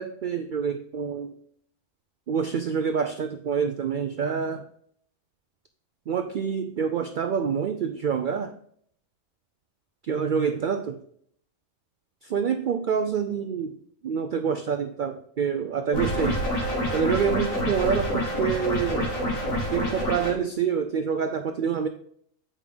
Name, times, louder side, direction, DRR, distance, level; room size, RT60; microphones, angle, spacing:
voice 1, 0.0-1.3 2.3-4.6 6.1-8.5 10.1-11.0 12.3-13.7 14.0-16.4 16.9-19.1 19.7-21.9, right 7 dB, 80° right, 7 dB, 0.4 m, -27 dB
sound 1, 15.9-20.3, equal, 75° left, 2.4 m, -27 dB
8.4 x 5.0 x 3.4 m, 0.63 s
omnidirectional pair, 1.4 m